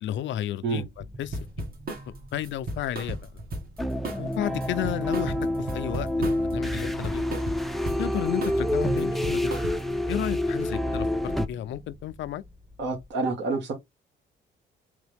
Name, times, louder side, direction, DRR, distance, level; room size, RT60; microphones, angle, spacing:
voice 1, 0.0-0.8 1.2-1.7 2.3-3.2 4.2-7.4 8.0-9.6 10.1-12.4, left 12 dB, 70° left, 0.5 m, -32 dB
sound 1, 0.7-13.1, equal, 20° right, 1.1 m, -46 dB
sound 2, 1.3-2.1 2.4-3.8 4.0-4.3 4.6-6.5 6.8-8.1 8.4-8.7 9.0-10.0, right 2 dB, 50° right, 1.6 m, -35 dB
sound 3, 3.8-11.5, left 1 dB, ahead, 0.5 m, -28 dB
voice 2, 12.8-13.7, right 3 dB, 65° right, 1.5 m, -28 dB
3.6 x 3.3 x 3.4 m
cardioid pair, 90°, 20 cm